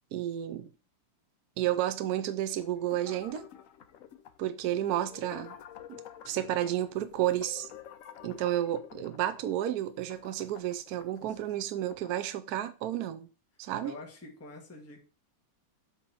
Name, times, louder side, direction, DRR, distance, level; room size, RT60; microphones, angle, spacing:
voice 1, 0.1-0.7 1.6-3.5 4.4-5.6 5.9-6.0 6.2-7.7 8.2-13.3 13.6-13.9, right 12 dB, 75° right, 0.9 m, -31 dB
sound 1, 2.6-12.2, left 10 dB, 75° left, 0.7 m, -50 dB
voice 2, 13.8-15.0, left 2 dB, 10° left, 1.1 m, -46 dB
7.8 x 3.0 x 5.5 m
omnidirectional pair, 2.1 m